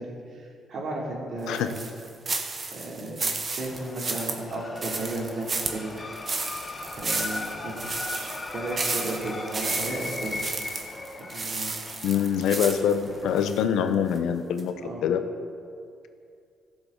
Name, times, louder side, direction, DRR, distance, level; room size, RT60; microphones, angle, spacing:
voice 1, 0.0-1.7 2.7-3.2 3.5-6.1 6.9-10.4 11.3-11.7 14.8-15.1, right 2 dB, 60° right, -3 dB, 2.8 m, -34 dB
sound 1, 1.5-13.6 14.1-14.2 14.6-14.7, right 3 dB, 35° right, 1.3 m, -32 dB
sound 2, 3.7-13.6, left 2 dB, 30° left, 1.1 m, -38 dB
voice 2, 12.0-14.7 15.0-15.2, left 8 dB, 85° left, 9 dB, 0.7 m, -24 dB
16.0 x 7.1 x 3.8 m, 2.4 s
cardioid pair, 90°, 0 cm